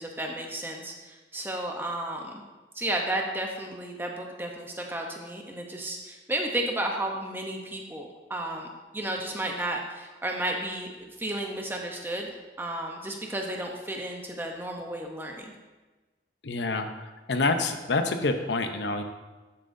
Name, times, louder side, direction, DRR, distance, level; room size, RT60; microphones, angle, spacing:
voice 1, 0.0-2.4 2.7-8.7 8.9-15.5, right 1 dB, 10° right, 1 dB, 0.7 m, -33 dB
voice 2, 16.4-16.9 17.3-19.0, left 3 dB, 75° left, 7 dB, 0.7 m, -27 dB
12.0 x 7.4 x 2.6 m, 1.2 s
head